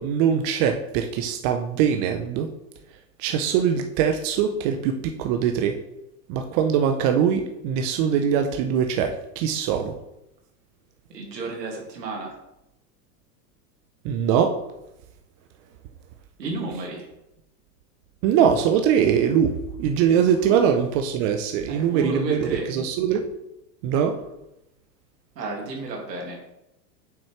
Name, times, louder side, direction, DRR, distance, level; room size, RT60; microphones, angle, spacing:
voice 1, 0.0-2.5 3.2-5.7 6.3-9.9 14.0-14.5 18.2-23.2 23.8-24.1, right 8 dB, 50° right, 5 dB, 0.8 m, -22 dB
voice 2, 11.1-12.4 16.4-17.1 21.7-22.7 25.4-26.4, right 3 dB, 85° right, 0 dB, 2.3 m, -32 dB
7.1 x 6.1 x 3.2 m, 0.87 s
hypercardioid pair, 105°, 48 cm